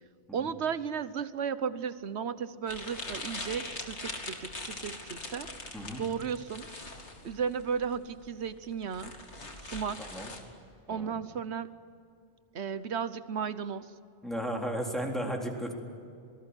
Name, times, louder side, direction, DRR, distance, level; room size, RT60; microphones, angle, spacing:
voice 1, 0.3-5.5 6.0-6.7 7.2-9.1 9.7-10.0 10.9-11.7 12.5-13.9, right 7 dB, 75° right, 14 dB, 1.2 m, -34 dB
sound 1, 2.7-10.4, left 2 dB, 85° left, 2.9 m, -42 dB
voice 2, 10.0-10.3 10.9-11.2 14.2-15.7, equal, ahead, 0 dB, 3.7 m, -34 dB
27.0 x 19.5 x 9.8 m, 2.4 s
omnidirectional pair, 1.1 m